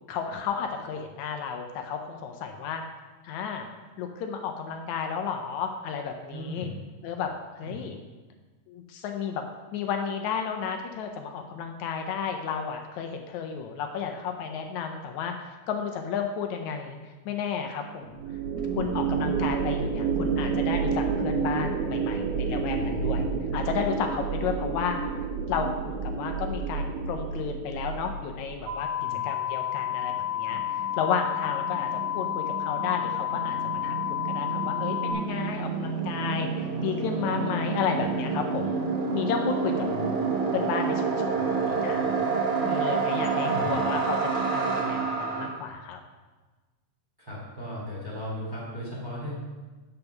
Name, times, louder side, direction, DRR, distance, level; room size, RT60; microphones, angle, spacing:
voice 1, 0.1-2.8 3.2-3.7 4.0-6.7 7.0-8.0 8.7-9.4 9.7-17.0 17.3-18.2 18.7-23.3 23.5-25.0 25.5-28.9 29.2-38.8 39.1-39.9 40.5-42.3 42.7-46.0, left 6 dB, 80° left, 4 dB, 2.0 m, -32 dB
voice 2, 6.3-6.7 7.6-7.8 22.7-23.3 29.0-29.2 39.9-40.3 43.4-43.8 47.2-49.3, equal, 10° right, -6 dB, 2.2 m, -37 dB
sound 1, 18.1-28.6, right 6 dB, 90° right, 2.5 m, -29 dB
sound 2, 28.7-35.1, left 11 dB, 70° right, 1.8 m, -30 dB
sound 3, 30.0-30.1 30.2-45.5, right 5 dB, 55° right, 1.8 m, -29 dB
8.1 x 5.3 x 5.8 m, 1.3 s
omnidirectional pair, 3.3 m